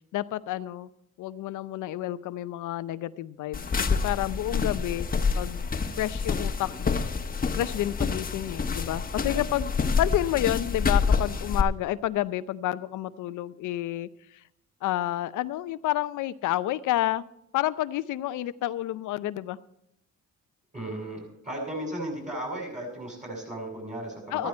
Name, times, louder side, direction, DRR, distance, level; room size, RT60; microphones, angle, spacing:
voice 1, 0.1-0.9 1.2-5.1 5.4-5.7 6.0-7.0 7.5-14.1 14.8-17.3 17.5-19.6 24.3-24.5, left 14 dB, 80° left, 15 dB, 0.7 m, -30 dB
sound 1, 3.5-11.6, left 5 dB, 30° left, 1.1 m, -27 dB
voice 2, 20.7-24.5, right 1 dB, 25° right, 1 dB, 6.3 m, -35 dB
14.5 x 13.5 x 4.4 m, 0.74 s
cardioid pair, 90°, 30 cm